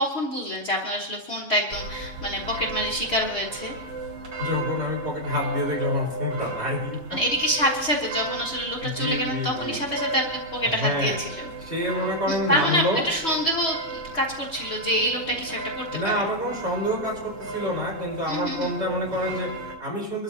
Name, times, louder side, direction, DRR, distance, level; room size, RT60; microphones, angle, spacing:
voice 1, 0.0-3.7 7.1-11.4 12.3-16.3 18.3-18.7, equal, 40° left, -3 dB, 1.4 m, -26 dB
sound 1, 1.7-19.8, right 3 dB, 70° right, 2.1 m, -35 dB
voice 2, 4.4-7.0 8.8-9.8 10.6-11.2 11.6-13.0 15.9-20.2, left 1 dB, 35° right, -5 dB, 4.8 m, -27 dB
24.5 x 12.5 x 2.8 m, 1.0 s
omnidirectional pair, 2.0 m